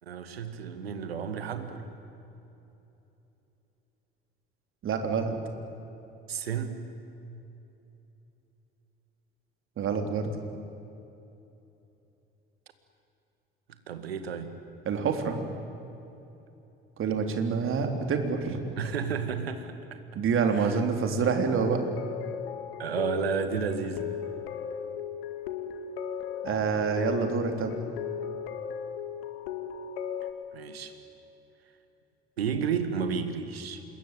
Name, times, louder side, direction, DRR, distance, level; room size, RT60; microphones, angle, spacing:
voice 1, 0.0-1.9 6.3-6.8 13.9-14.5 18.8-20.0 20.5-20.8 22.8-24.1 30.5-31.0 32.4-33.8, right 6 dB, 80° right, 9 dB, 2.0 m, -32 dB
voice 2, 4.8-5.3 9.8-10.3 14.9-15.4 17.0-18.6 20.1-21.8 26.4-27.8, right 5 dB, 45° right, 5 dB, 3.6 m, -27 dB
sound 1, 21.6-30.3, left 8 dB, 70° left, 2.1 m, -36 dB
27.0 x 21.5 x 9.3 m, 3.0 s
figure-of-eight pair, 60°, 30 cm